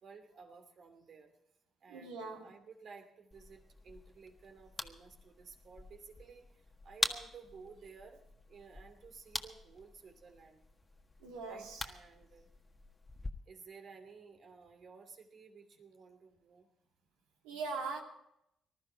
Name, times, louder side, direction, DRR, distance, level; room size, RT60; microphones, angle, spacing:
voice 1, 0.0-1.3 1.8-6.5 6.8-8.2 8.5-10.6 11.4-12.5 13.5-16.7, right 5 dB, 60° right, 2.7 m, -55 dB
voice 2, 1.9-2.5 11.2-11.9 17.4-18.0, right 4 dB, 90° right, 2.4 m, -41 dB
sound 1, 3.3-13.3, left 2 dB, 25° left, 1.6 m, -44 dB
20.0 x 13.0 x 4.5 m
hypercardioid pair, 50°, 0 cm